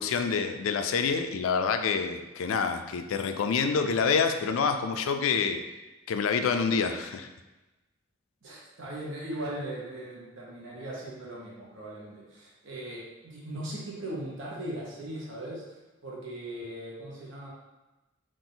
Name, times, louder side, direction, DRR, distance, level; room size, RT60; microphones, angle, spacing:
voice 1, 0.0-5.6 6.1-7.3, left 5 dB, 90° left, 7 dB, 0.4 m, -27 dB
voice 2, 8.4-15.6 16.0-17.5, right 1 dB, 65° right, -5 dB, 0.9 m, -39 dB
3.8 x 2.5 x 3.9 m, 1.1 s
head